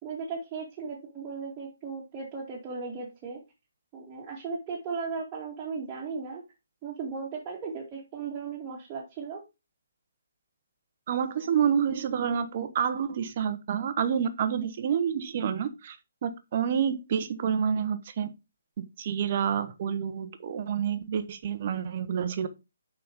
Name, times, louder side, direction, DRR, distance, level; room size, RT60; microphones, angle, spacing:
voice 1, 0.0-3.4 3.9-6.4 6.8-9.4, right 5 dB, 20° right, 2.1 m, -36 dB
voice 2, 11.1-16.0 16.2-18.3 18.8-22.5, right 8 dB, 40° right, 1.1 m, -28 dB
6.9 x 5.5 x 5.1 m
figure-of-eight pair, 140°, 0 cm